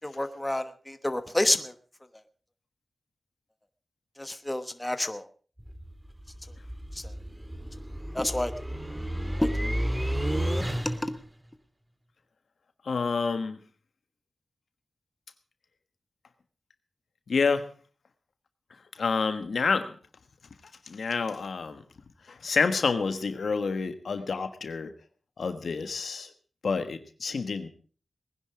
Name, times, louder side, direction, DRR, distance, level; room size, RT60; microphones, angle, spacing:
voice 1, 0.0-1.7 4.2-5.2 8.1-8.5 9.4-9.5 11.0-11.1, left 1 dB, 15° left, 10 dB, 1.2 m, -28 dB
sound 1, 5.6-11.3, equal, 10° right, 1.6 m, -32 dB
voice 2, 12.8-13.6 17.3-17.7 19.0-19.9 20.9-21.8 22.3-24.9 25.4-26.3 26.6-27.7, left 4 dB, 75° left, 10 dB, 1.4 m, -28 dB
19.5 x 10.5 x 4.9 m, 0.41 s
cardioid pair, 65°, 0 cm